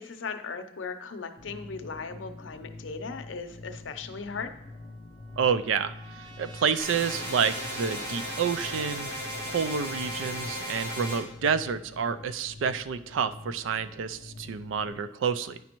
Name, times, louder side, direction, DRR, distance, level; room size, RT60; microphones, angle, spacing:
voice 1, 0.0-4.5, left 5 dB, 70° left, 8 dB, 0.6 m, -37 dB
sound 1, 1.4-14.9, left 2 dB, 30° left, 0.4 m, -46 dB
Trumpet, 4.6-9.3, right 2 dB, 25° right, 0.8 m, -48 dB
voice 2, 5.4-9.1 9.5-15.6, right 6 dB, 80° right, 13 dB, 0.4 m, -29 dB
sound 2, 6.8-11.2, equal, 65° right, 2.8 m, -35 dB
9.4 x 5.1 x 2.9 m, 0.77 s
head